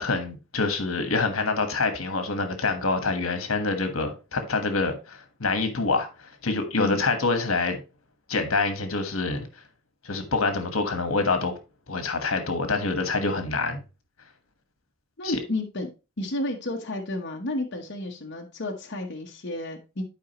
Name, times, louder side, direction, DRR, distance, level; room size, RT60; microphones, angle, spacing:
voice 1, 0.0-7.8 8.3-9.5 10.0-11.6 11.9-13.8 15.2-15.4, left 3 dB, 80° left, 1.4 m, -26 dB
voice 2, 15.2-15.9 16.2-20.0, left 1 dB, 55° left, 1.1 m, -31 dB
11.0 x 4.9 x 3.0 m
head